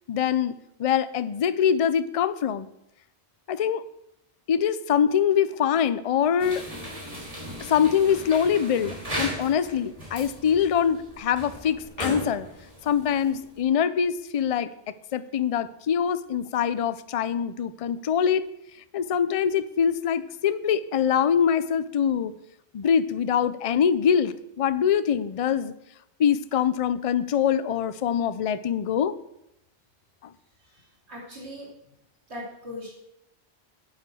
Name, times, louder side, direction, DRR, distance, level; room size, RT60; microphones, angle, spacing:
voice 1, 0.1-0.5 0.8-2.7 3.5-3.8 4.5-6.7 7.7-12.5 12.8-14.7 15.1-18.4 18.9-22.3 22.7-25.7 26.2-29.1, left 8 dB, 45° left, 14 dB, 0.5 m, -24 dB
sound 1, 6.4-13.6, equal, 35° right, 3.4 m, -37 dB
voice 2, 30.6-31.7 32.3-32.9, left 1 dB, 80° right, -4 dB, 3.2 m, -40 dB
9.4 x 8.1 x 6.2 m, 0.83 s
omnidirectional pair, 1.1 m